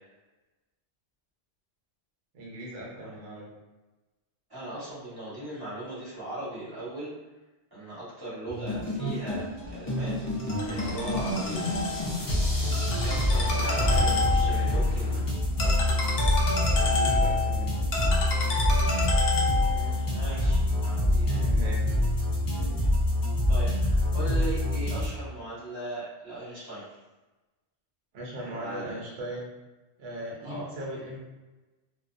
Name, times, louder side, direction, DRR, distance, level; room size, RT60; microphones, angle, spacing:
voice 1, 2.3-3.5 13.5-14.1 14.5-14.6 16.6-17.8 21.4-21.9 22.5-22.9 28.1-29.5 30.0-31.2, right 1 dB, 70° right, -4 dB, 0.9 m, -38 dB
voice 2, 4.5-7.1 7.7-10.2 10.6-11.7 13.0-15.2 19.6-21.4 23.5-26.8 28.5-29.0 30.4-30.7, right 2 dB, 20° right, -10 dB, 1.3 m, -38 dB
sound 1, 8.5-25.1, left 1 dB, 35° left, 0.3 m, -26 dB
Ringtone, 10.4-20.0, left 3 dB, 70° left, 0.8 m, -30 dB
2.5 x 2.2 x 2.4 m, 1.1 s
omnidirectional pair, 1.1 m